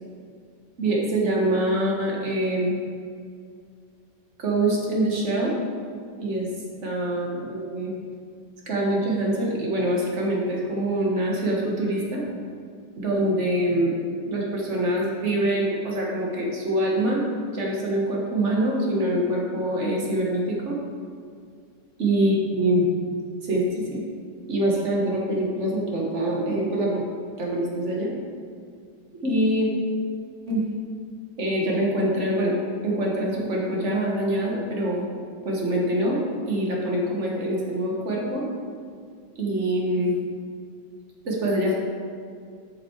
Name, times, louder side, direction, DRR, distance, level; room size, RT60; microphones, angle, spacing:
voice 1, 0.8-2.8 4.4-5.5 6.2-6.5 6.8-7.9 8.7-12.2 13.0-14.0 14.3-17.3 17.5-20.8 22.0-22.9 23.4-24.0 24.5-27.0 27.4-28.1 29.2-29.7 30.5-30.7 31.4-32.6 32.8-35.1 35.4-36.2 36.5-38.5 39.4-40.1 41.2-41.7, right 1 dB, 45° right, -2 dB, 1.7 m, -24 dB
8.2 x 6.0 x 4.6 m, 2.2 s
omnidirectional pair, 1.9 m